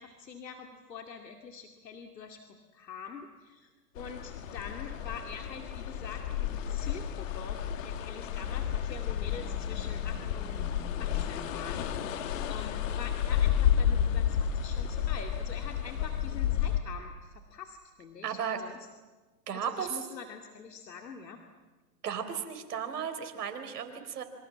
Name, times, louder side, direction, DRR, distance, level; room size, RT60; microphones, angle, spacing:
voice 1, 0.0-2.4 2.7-10.6 11.0-11.9 12.5-18.8 19.5-21.4, left 6 dB, 80° left, 4 dB, 2.5 m, -45 dB
sound 1, 4.0-16.8, left 9 dB, 50° left, 2.1 m, -31 dB
sound 2, 8.5-13.2, left 1 dB, 15° left, 6.3 m, -50 dB
voice 2, 18.2-18.6 19.5-19.9 22.0-24.2, right 8 dB, 65° right, 7 dB, 4.2 m, -35 dB
27.5 x 25.0 x 7.5 m, 1.3 s
hypercardioid pair, 130°, 49 cm